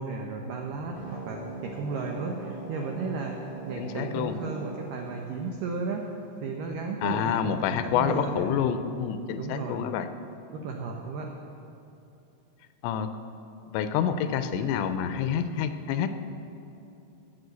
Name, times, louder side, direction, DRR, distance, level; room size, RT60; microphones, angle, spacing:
voice 1, 0.0-3.4 3.7-6.1 6.4-7.4 7.7-8.5 9.4-9.9 10.5-11.3, right 4 dB, 90° right, 1 dB, 1.9 m, -34 dB
sound 1, 0.9-5.9, right 3 dB, 15° left, 2.6 m, -41 dB
voice 2, 3.8-4.4 7.0-10.1 12.8-13.1 13.7-16.1, left 8 dB, 85° left, 10 dB, 2.9 m, -28 dB
13.0 x 6.9 x 8.1 m, 2.9 s
omnidirectional pair, 5.1 m